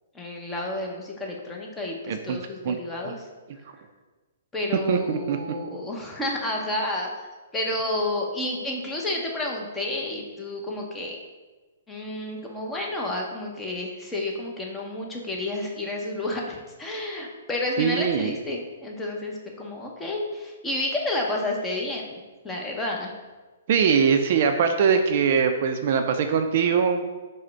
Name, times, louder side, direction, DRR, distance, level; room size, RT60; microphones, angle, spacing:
voice 1, 0.1-3.3 4.5-7.1 7.5-11.2 11.9-22.2 22.4-23.1, left 1 dB, 10° left, -1 dB, 0.7 m, -30 dB
voice 2, 2.1-2.4 2.6-2.8 3.0-3.1 4.7-5.4 17.8-18.3 23.7-27.1, right 6 dB, 55° right, 6 dB, 0.4 m, -22 dB
4.8 x 2.1 x 4.5 m, 1.3 s
hypercardioid pair, 140°, 0 cm